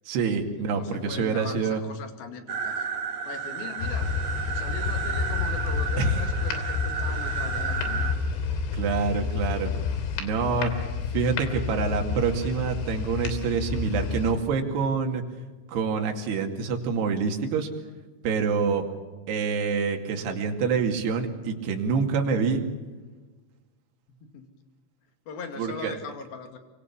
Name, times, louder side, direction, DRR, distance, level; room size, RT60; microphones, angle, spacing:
voice 1, 0.1-1.8 6.0-6.2 8.7-9.7 10.2-10.7 11.1-15.2 15.7-17.7 18.2-18.8 19.3-22.6 25.6-26.0, right 5 dB, 60° right, 3 dB, 4.3 m, -26 dB
voice 2, 0.6-2.9 3.3-4.2 4.5-8.2 24.1-24.5 25.3-26.6, left 5 dB, 55° left, 7 dB, 3.8 m, -40 dB
sound 1, 2.5-8.2, right 6 dB, 45° right, 2.6 m, -32 dB
sound 2, 3.8-14.3, left 5 dB, 80° left, 5.3 m, -30 dB
25.0 x 25.0 x 7.2 m, 1.3 s
omnidirectional pair, 5.4 m